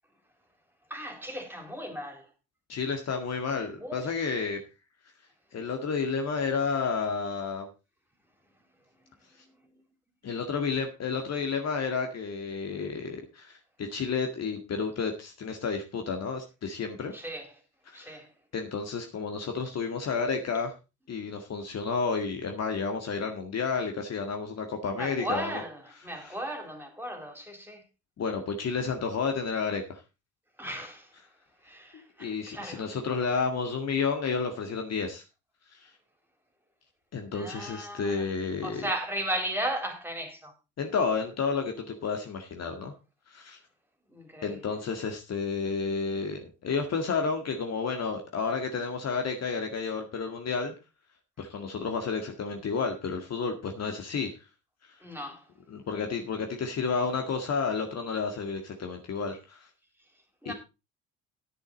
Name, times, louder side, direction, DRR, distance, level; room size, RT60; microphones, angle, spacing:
voice 1, 0.9-2.3 3.8-4.4 8.6-8.7 9.1-9.2 9.4-9.8 17.1-17.6 17.9-18.3 24.9-27.8 30.6-31.2 31.6-32.9 37.3-38.3 38.6-40.5 44.1-44.8 55.0-55.5 60.0-60.5, right 1 dB, 5° right, 3.7 m, -37 dB
voice 2, 2.7-4.6 5.5-7.7 10.2-17.1 17.9-18.2 18.5-20.7 21.1-25.6 28.2-30.0 32.2-35.2 35.7-35.9 37.1-38.8 40.8-42.9 43.3-43.6 44.4-50.7 51.4-54.3 55.7-59.7 60.5-60.6, left 5 dB, 40° left, 1.9 m, -31 dB
10.5 x 10.0 x 4.0 m
figure-of-eight pair, 55°, 40 cm